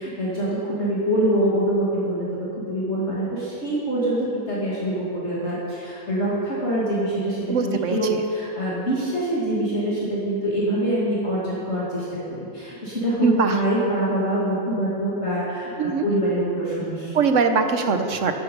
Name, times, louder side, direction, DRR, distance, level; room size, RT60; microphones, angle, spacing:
voice 1, 0.0-2.3 2.7-17.1, right 1 dB, 45° left, -8 dB, 2.8 m, -25 dB
voice 2, 7.5-8.0 13.2-13.6 15.8-16.0 17.1-18.3, right 5 dB, 55° right, 7 dB, 1.3 m, -21 dB
15.0 x 12.0 x 5.5 m, 2.8 s
omnidirectional pair, 1.6 m